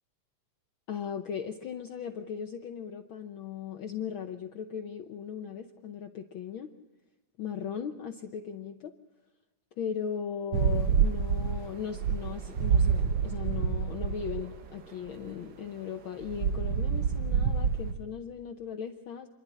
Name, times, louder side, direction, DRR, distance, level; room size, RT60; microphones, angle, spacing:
voice 1, 0.9-6.7 7.4-8.9 9.8-19.3, left 8 dB, 85° left, 5 dB, 1.1 m, -38 dB
sound 1, 10.5-14.4 16.2-17.9, right 6 dB, 80° right, 1.0 m, -27 dB
27.5 x 11.5 x 9.9 m, 1.2 s
omnidirectional pair, 3.4 m